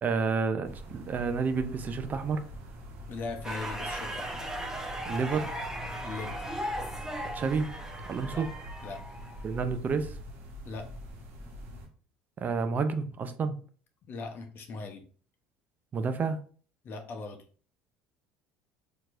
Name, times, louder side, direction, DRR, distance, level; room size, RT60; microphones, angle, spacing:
voice 1, 0.0-2.4 5.1-5.6 7.3-7.7 8.1-8.5 9.4-10.2 12.4-13.6 15.9-16.4, right 5 dB, 40° right, 0.5 m, -30 dB
sound 1, 0.6-11.9, equal, 55° right, 1.2 m, -44 dB
voice 2, 3.1-4.5 6.0-6.4 8.3-8.5 8.8-9.0 10.6-10.9 14.1-15.0 16.8-17.4, left 3 dB, 50° left, 0.8 m, -39 dB
sound 2, 3.4-9.6, right 1 dB, 10° right, 1.0 m, -37 dB
4.4 x 2.9 x 2.5 m
hypercardioid pair, 75°, 5 cm